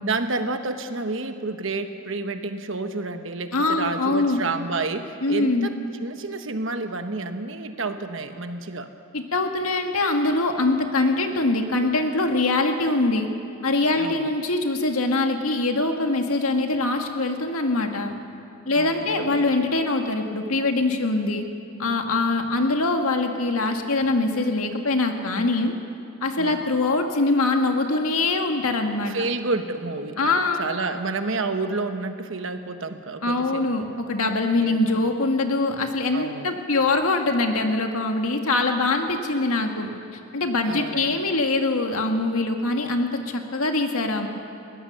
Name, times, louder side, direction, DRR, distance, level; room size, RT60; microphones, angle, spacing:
voice 1, 0.0-8.9 13.9-14.3 18.7-19.4 26.4-26.6 29.1-33.7 34.6-35.1 36.1-36.5 40.6-41.2, right 3 dB, 60° right, 7 dB, 1.2 m, -30 dB
voice 2, 3.5-4.4 5.2-5.7 9.1-13.3 13.6-18.1 18.7-21.4 21.8-25.7 26.2-29.1 30.2-30.7 33.2-39.9 40.3-44.3, left 2 dB, 85° left, 4 dB, 1.8 m, -23 dB
21.5 x 18.0 x 6.9 m, 2.5 s
head